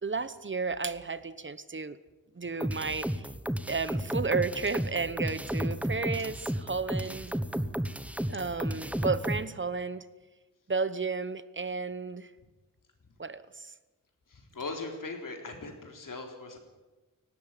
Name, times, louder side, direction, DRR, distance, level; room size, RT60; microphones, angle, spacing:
voice 1, 0.0-2.0 2.3-3.3 3.7-7.3 8.3-10.0 10.7-12.3 13.2-13.7, right 4 dB, 35° right, 14 dB, 1.0 m, -33 dB
sound 1, 2.6-9.4, equal, 5° right, 1.0 m, -32 dB
voice 2, 14.3-16.6, left 3 dB, 80° left, 4 dB, 3.9 m, -40 dB
18.5 x 17.0 x 9.1 m, 1.2 s
wide cardioid pair, 100°, 32 cm